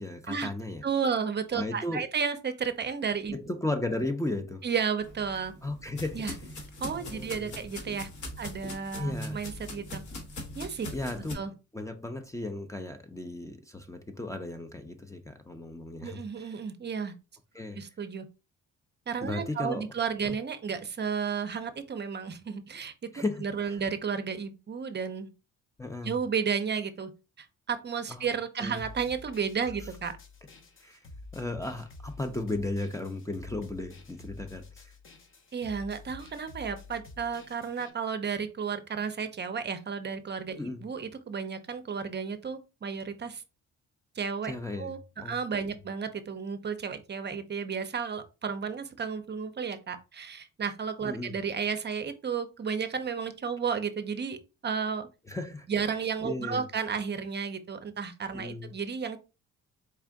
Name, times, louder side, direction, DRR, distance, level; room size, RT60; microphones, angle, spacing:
voice 1, 0.0-0.8 1.5-2.1 3.3-4.6 5.6-6.3 6.9-7.6 9.0-9.4 10.9-11.4 11.7-16.6 17.5-17.8 19.2-19.9 20.2-20.4 23.1-23.8 25.8-26.2 28.1-28.3 28.6-28.8 30.8-31.0 31.3-34.9 40.6-40.8 44.4-44.9 45.2-45.4 51.1-51.4 55.3-55.7 56.2-56.7 58.3-58.7, left 2 dB, 10° left, 0.5 m, -35 dB
voice 2, 0.8-3.4 4.6-5.5 6.1-6.3 6.8-8.1 8.4-10.0 10.6-10.9 11.3-11.5 16.0-17.1 17.7-18.3 19.1-22.9 23.4-25.3 26.0-27.1 27.4-30.2 35.5-43.4 44.2-55.1 55.7-59.2, right 6 dB, 35° right, 0.6 m, -33 dB
sound 1, 5.0-11.3, left 1 dB, 75° left, 1.5 m, -41 dB
sound 2, 28.8-37.9, left 2 dB, 40° left, 0.9 m, -49 dB
4.4 x 2.4 x 3.5 m
cardioid pair, 90°, 30 cm